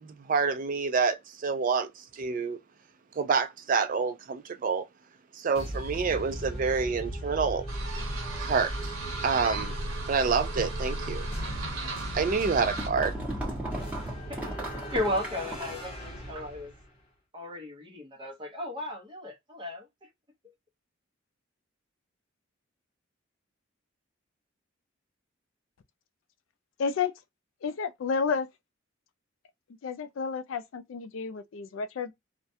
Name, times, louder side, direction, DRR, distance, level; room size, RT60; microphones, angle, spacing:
voice 1, 0.0-2.6 3.1-4.9 5.3-7.6 8.4-8.9 9.2-9.7 10.1-11.3 12.1-13.2, right 5 dB, 40° right, 0.3 m, -28 dB
sound 1, 5.5-16.9, equal, 30° left, 0.8 m, -38 dB
sound 2, 7.7-12.9, right 2 dB, 75° right, 0.9 m, -35 dB
sound 3, 12.8-15.9, right 1 dB, 5° right, 1.0 m, -37 dB
voice 2, 14.9-16.7 17.3-20.1, left 1 dB, 25° right, 0.7 m, -35 dB
voice 3, 26.8-27.1 27.6-28.5 29.8-32.1, left 5 dB, 70° left, 0.4 m, -31 dB
2.3 x 2.1 x 2.6 m
head